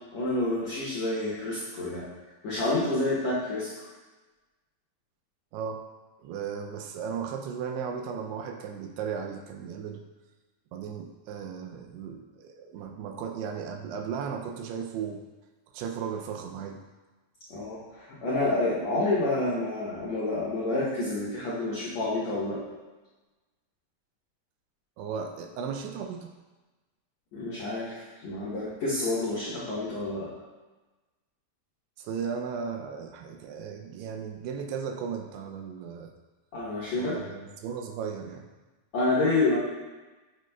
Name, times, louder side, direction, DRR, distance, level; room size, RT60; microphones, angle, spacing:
voice 1, 0.1-2.0 2.4-3.7 17.5-22.6 27.3-30.3 36.5-37.2 38.9-39.6, left 2 dB, 80° left, -8 dB, 1.5 m, -28 dB
voice 2, 5.5-5.8 6.2-10.0 10.7-15.2 15.7-16.8 25.0-26.3 32.0-36.1 36.9-38.5, right 6 dB, 85° right, 4 dB, 2.5 m, -36 dB
9.1 x 6.1 x 2.3 m, 1.2 s
omnidirectional pair, 4.8 m